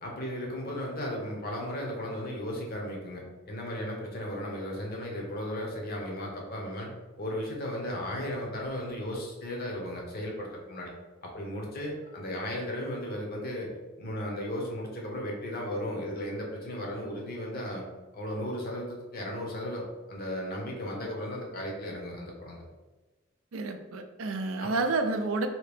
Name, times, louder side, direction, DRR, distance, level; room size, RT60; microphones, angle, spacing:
voice 1, 0.0-6.9 7.2-10.9 11.2-13.7 14.0-17.8 18.1-19.8 20.1-22.6 24.6-24.7, left 1 dB, 45° left, -1 dB, 0.8 m, -35 dB
voice 2, 23.5-25.5, right 3 dB, 75° right, 6 dB, 0.4 m, -29 dB
2.8 x 2.7 x 3.4 m, 1.2 s
head